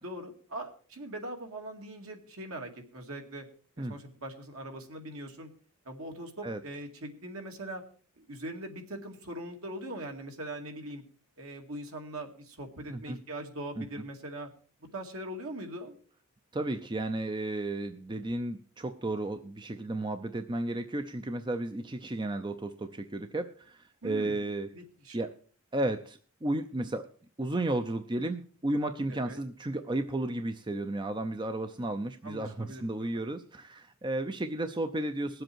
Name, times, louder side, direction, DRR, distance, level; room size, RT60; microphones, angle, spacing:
voice 1, 0.0-3.5 3.8-5.5 5.9-7.8 8.2-11.0 11.4-14.5 14.9-16.0 24.0-24.4 24.7-25.3 29.1-29.4 32.2-33.3, right 1 dB, 65° right, 3 dB, 2.2 m, -41 dB
voice 2, 16.5-24.7 25.1-25.4 25.7-27.1 27.4-35.4, right 1 dB, 20° right, 8 dB, 0.6 m, -33 dB
20.0 x 7.8 x 4.6 m, 0.41 s
head